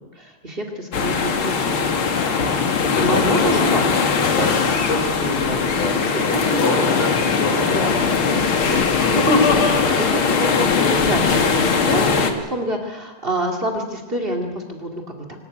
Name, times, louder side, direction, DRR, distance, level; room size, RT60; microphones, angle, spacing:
voice 1, 0.1-1.9 3.0-3.9 6.3-6.8 7.7-14.9 15.2-15.3, right 1 dB, 40° right, 4 dB, 0.8 m, -26 dB
sound 1, 0.9-12.3, left 5 dB, 70° left, 1.2 m, -20 dB
voice 2, 2.7-3.2 3.5-3.6 4.3-7.9 9.0-9.1, left 2 dB, 35° left, -4 dB, 5.6 m, -27 dB
25.5 x 13.5 x 9.1 m, 1.3 s
omnidirectional pair, 5.2 m